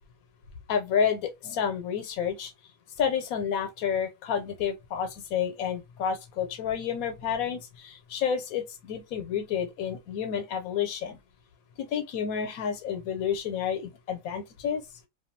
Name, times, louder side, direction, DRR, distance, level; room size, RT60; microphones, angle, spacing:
voice 1, 0.7-2.5 3.0-11.2 11.8-14.8, left 7 dB, 90° left, 1.1 m, -30 dB
2.5 x 2.3 x 2.6 m
omnidirectional pair, 1.5 m